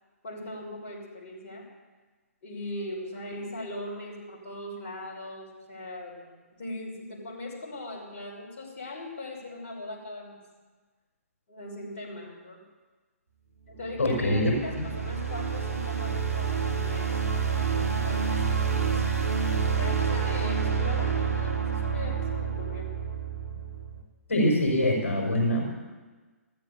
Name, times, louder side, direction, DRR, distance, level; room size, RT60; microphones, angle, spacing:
voice 1, 0.2-1.7 2.4-10.4 11.5-12.6 13.7-17.1 17.5-19.2 19.8-22.9, left 1 dB, 35° left, -4 dB, 5.4 m, -40 dB
sound 1, 13.8-24.0, right 6 dB, 75° right, 2.4 m, -28 dB
voice 2, 14.0-14.5 14.8-14.9 24.3-25.6, left 1 dB, 55° left, -1 dB, 5.3 m, -24 dB
15.5 x 13.5 x 7.0 m, 1.3 s
figure-of-eight pair, 130°, 8 cm